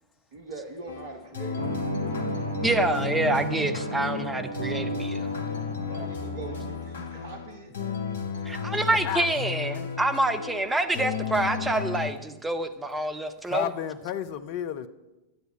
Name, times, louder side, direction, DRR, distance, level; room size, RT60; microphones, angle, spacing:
voice 1, 0.3-2.6 5.8-7.8, right 3 dB, 55° right, 1.1 m, -43 dB
sound 1, 0.9-12.1, left 6 dB, 65° left, 0.9 m, -34 dB
sound 2, 1.6-6.8, right 2 dB, 75° right, 1.2 m, -34 dB
voice 2, 2.6-5.3 8.5-13.7, right 2 dB, 10° right, 0.7 m, -27 dB
voice 3, 8.9-9.3 13.4-14.9, left 9 dB, 45° left, 0.5 m, -32 dB
10.5 x 8.0 x 5.5 m
figure-of-eight pair, 90°, 0 cm